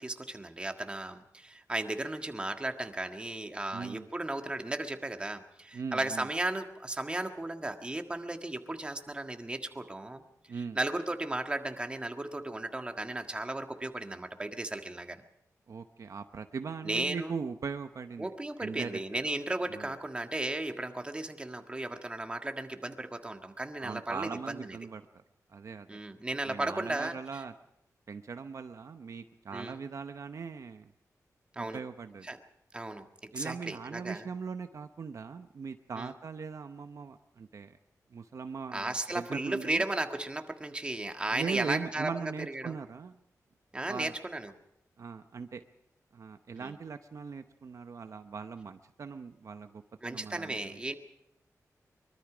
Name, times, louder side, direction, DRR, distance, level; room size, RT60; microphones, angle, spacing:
voice 1, 0.0-10.2 10.5-15.2 16.8-17.3 18.2-24.8 25.9-27.4 29.5-29.8 31.5-31.8 32.2-32.4 32.7-34.2 36.0-36.1 38.7-42.8 43.7-44.5 46.5-46.8 50.0-51.0, right 2 dB, 15° right, 5 dB, 1.6 m, -35 dB
voice 2, 3.7-4.1 5.7-6.3 10.5-10.8 15.7-18.3 18.6-19.0 19.7-19.9 23.8-25.2 25.5-26.0 26.5-27.5 28.1-30.9 31.6-32.3 33.3-37.8 38.1-39.8 41.3-43.1 43.9-44.2 45.0-45.6 46.1-50.8, right 5 dB, 60° right, 8 dB, 0.8 m, -40 dB
24.0 x 23.0 x 5.0 m, 0.81 s
wide cardioid pair, 165°, 6 cm